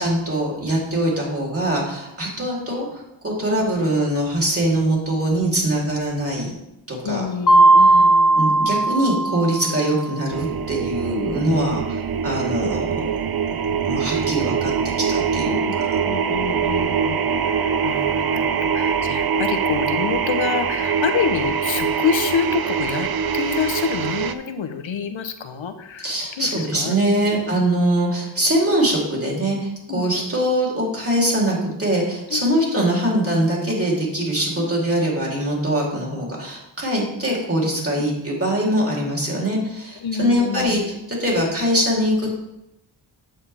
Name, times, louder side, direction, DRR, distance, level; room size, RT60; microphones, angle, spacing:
voice 1, 0.0-6.6 6.9-7.2 7.8-8.0 8.4-11.8 12.2-13.1 13.8-14.7 15.0-15.9 26.0-40.8 41.1-42.3, right 1 dB, 30° right, -3 dB, 3.2 m, -22 dB
voice 2, 7.0-8.5 15.5-27.4 29.9-30.0 32.3-32.4 34.6-34.7 37.9-38.1 40.0-40.9, left 7 dB, 85° left, 8 dB, 0.9 m, -27 dB
Mallet percussion, 7.5-10.1, right 2 dB, 45° left, 0.9 m, -16 dB
sound 1, 10.3-24.3, right 6 dB, 50° right, 0.7 m, -23 dB
8.8 x 7.2 x 3.4 m, 0.87 s
cardioid pair, 70°, 46 cm